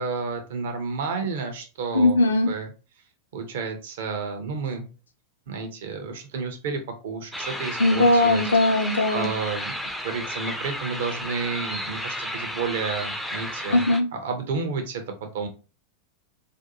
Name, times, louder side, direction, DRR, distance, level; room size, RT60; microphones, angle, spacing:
voice 1, 0.0-2.2 2.5-2.7 3.3-4.9 5.5-8.5 9.1-9.7 10.0-13.8 14.1-15.5, right 4 dB, 55° right, 5 dB, 0.5 m, -31 dB
voice 2, 1.9-2.5 7.8-9.3 13.7-14.0, left 2 dB, 75° left, 5 dB, 0.5 m, -19 dB
sound 1, 7.3-14.0, equal, ahead, 0.3 m, -33 dB
2.5 x 2.2 x 2.6 m, 0.34 s
figure-of-eight pair, 90°, 0 cm